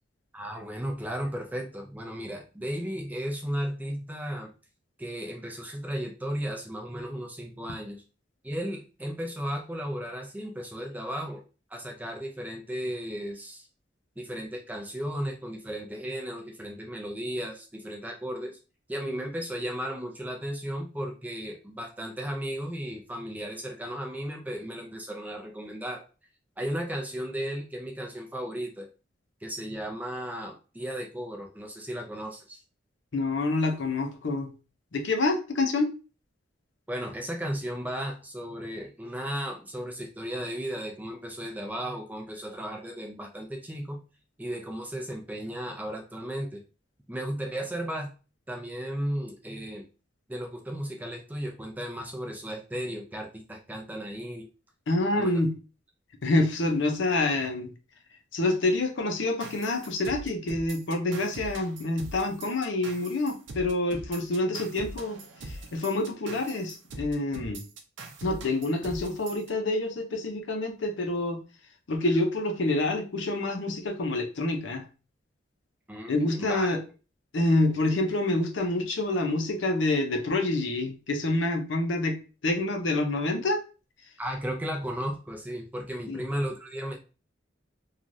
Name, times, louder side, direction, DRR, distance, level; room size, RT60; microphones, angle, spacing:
voice 1, 0.3-4.5 5.0-8.0 8.4-11.4 11.7-13.7 14.2-18.6 18.9-26.0 26.6-28.9 29.4-32.6 36.9-44.0 44.4-46.6 47.1-48.1 48.5-49.9 50.3-54.5 55.1-55.3 75.9-76.1 76.4-76.8 84.2-87.0, equal, 10° right, 1 dB, 0.5 m, -35 dB
voice 2, 33.1-34.5 34.9-35.9 54.9-55.5 56.2-57.7 58.3-67.6 68.2-71.4 71.9-74.8 76.1-76.8 77.3-82.2 82.4-83.6 86.1-86.2, left 2 dB, 75° left, 5 dB, 0.6 m, -27 dB
sound 1, 59.4-69.5, right 2 dB, 75° right, 0.6 m, -42 dB
3.1 x 2.4 x 2.5 m, 0.33 s
head